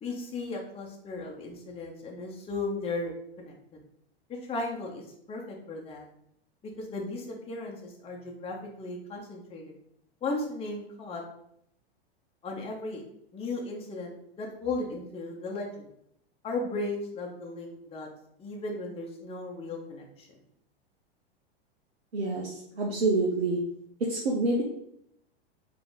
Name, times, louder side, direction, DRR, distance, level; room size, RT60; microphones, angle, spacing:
voice 1, 0.0-3.5 4.4-6.0 6.8-9.7 10.2-11.2 12.4-13.0 13.3-15.9 16.4-18.1 18.4-20.3, left 2 dB, 20° left, -1 dB, 0.8 m, -36 dB
voice 2, 22.1-23.6 24.0-24.6, right 2 dB, 85° right, -2 dB, 0.8 m, -27 dB
3.8 x 2.8 x 3.8 m, 0.73 s
hypercardioid pair, 100°, 31 cm